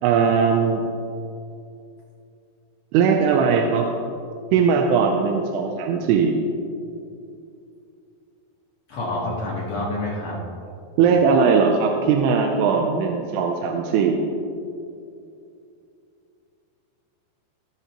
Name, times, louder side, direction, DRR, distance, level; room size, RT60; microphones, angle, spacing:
voice 1, 0.0-0.8 2.9-3.9 4.5-6.4 11.0-14.2, right 6 dB, 85° right, 2 dB, 2.7 m, -19 dB
voice 2, 8.9-10.4, left 2 dB, 60° left, -5 dB, 1.7 m, -27 dB
17.5 x 6.8 x 2.9 m, 2.5 s
omnidirectional pair, 4.6 m